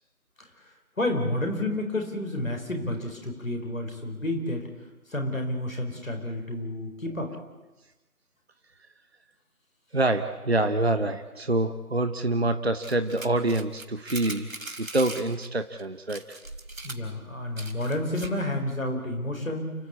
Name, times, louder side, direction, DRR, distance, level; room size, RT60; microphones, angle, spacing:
voice 1, 1.0-4.7 5.1-7.3 16.8-19.7, left 1 dB, 60° left, 3 dB, 5.1 m, -30 dB
voice 2, 9.9-14.5 14.8-16.4, right 2 dB, 45° right, 8 dB, 1.0 m, -26 dB
sound 1, 12.8-15.5 15.8-15.9 16.1-18.5, right 2 dB, 60° right, 2.7 m, -40 dB
29.5 x 14.0 x 8.5 m, 1.1 s
figure-of-eight pair, 170°, 45 cm